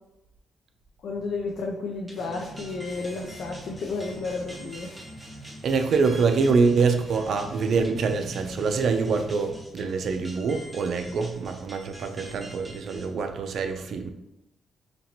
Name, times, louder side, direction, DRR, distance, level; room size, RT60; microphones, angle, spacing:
voice 1, 1.0-4.9, left 3 dB, 65° left, 0.4 m, -32 dB
sound 1, 2.1-13.1, equal, 5° right, 0.6 m, -47 dB
sound 2, 2.2-9.8, equal, 30° left, 1.0 m, -44 dB
voice 2, 5.6-14.1, right 4 dB, 55° right, 0.4 m, -25 dB
4.2 x 2.9 x 2.8 m
cardioid pair, 165°, 0 cm